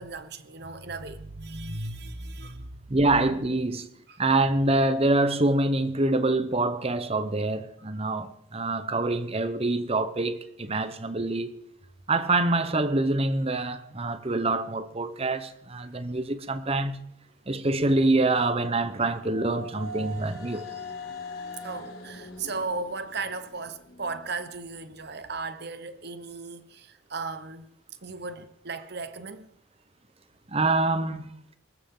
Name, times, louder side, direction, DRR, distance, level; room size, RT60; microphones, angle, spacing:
voice 1, 0.0-2.8 4.1-4.2 21.6-27.7 28.0-29.5, right 3 dB, 50° right, 1.1 m, -36 dB
voice 2, 2.9-3.9 4.2-11.5 12.1-17.0 17.5-20.7 30.5-31.3, right 2 dB, 30° right, 0.9 m, -25 dB
sound 1, 19.0-24.3, left 1 dB, 70° left, 5.1 m, -41 dB
23.5 x 14.0 x 3.9 m
head